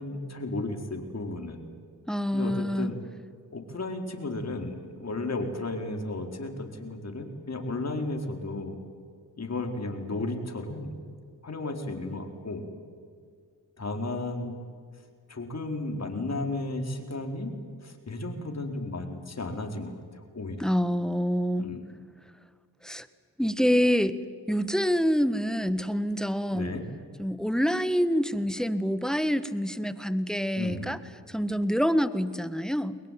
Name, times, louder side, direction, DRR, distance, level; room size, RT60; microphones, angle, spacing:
voice 1, 0.0-1.6 2.3-3.0 3.5-8.8 9.4-11.0 11.4-12.7 13.8-14.6 15.3-17.5 17.8-20.7 21.6-21.8 26.5-26.8 30.6-31.0, left 2 dB, 40° left, 4 dB, 4.5 m, -34 dB
voice 2, 2.1-2.9 20.6-21.7 22.8-23.1 23.4-24.2 24.5-26.8 27.2-31.0 31.3-33.0, equal, ahead, 13 dB, 1.6 m, -26 dB
22.5 x 21.5 x 9.3 m, 2.1 s
supercardioid pair, 55°, 40 cm